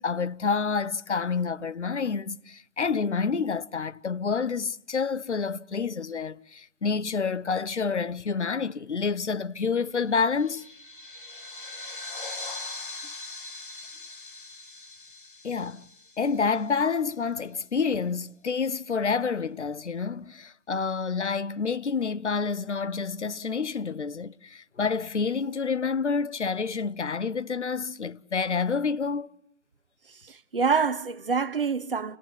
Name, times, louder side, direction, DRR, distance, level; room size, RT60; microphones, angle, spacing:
voice 1, 0.0-10.6 15.4-15.9 16.2-29.3, left 5 dB, 65° left, 1.0 m, -28 dB
sound 1, 10.0-16.8, left 2 dB, 45° left, 2.2 m, -41 dB
voice 2, 30.1-32.2, right 5 dB, 45° right, 1.4 m, -26 dB
29.0 x 19.5 x 8.0 m
hypercardioid pair, 175°, 37 cm